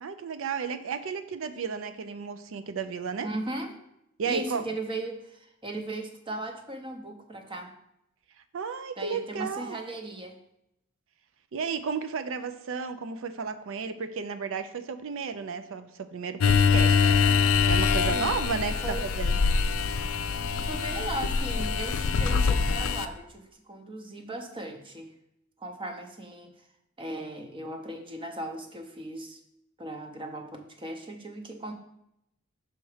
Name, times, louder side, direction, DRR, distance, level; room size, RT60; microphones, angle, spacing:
voice 1, 0.0-3.3 4.2-4.6 8.5-9.8 11.5-19.4, right 5 dB, 65° right, 9 dB, 0.5 m, -33 dB
voice 2, 3.2-3.8 4.2-7.7 9.0-10.4 18.1-18.4 18.8-19.1 20.6-25.1 25.6-26.5 27.0-29.4 29.8-31.7, right 1 dB, 25° right, 4 dB, 0.7 m, -37 dB
sound 1, 16.4-23.1, left 5 dB, 75° left, 0.4 m, -24 dB
5.8 x 4.1 x 4.8 m, 0.79 s
head